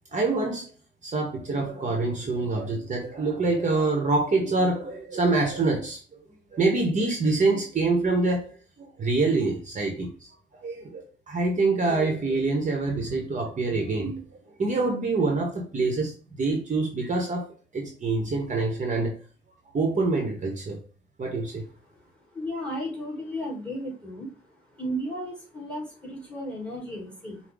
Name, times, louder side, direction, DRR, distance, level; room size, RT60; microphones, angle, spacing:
voice 1, 0.1-0.7 1.0-6.3 6.5-19.2 19.7-20.8 21.2-21.6, right 3 dB, 40° right, 1.1 m, -26 dB
voice 2, 22.3-24.3 24.8-27.4, equal, 5° left, 2.3 m, -34 dB
5.7 x 2.3 x 3.5 m
cardioid pair, 90°, 20 cm